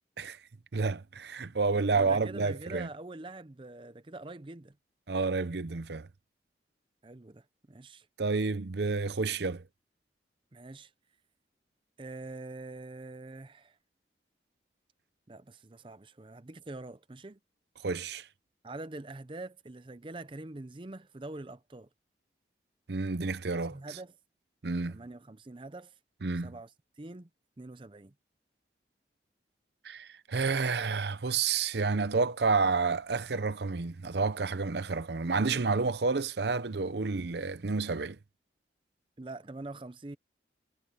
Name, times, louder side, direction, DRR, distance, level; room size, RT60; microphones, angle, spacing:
voice 1, 0.7-2.9 5.1-6.1 8.2-9.6 17.8-18.2 22.9-23.8 24.6-25.0 26.2-26.5 29.8-38.2, right 4 dB, 70° right, 0.7 m, -30 dB
voice 2, 1.9-4.7 7.0-8.1 10.5-10.9 12.0-13.8 15.3-17.4 18.6-21.9 23.7-24.1 24.9-25.9 26.4-26.7 27.0-27.3 27.6-28.1 39.2-40.2, right 2 dB, 30° right, 0.6 m, -44 dB
head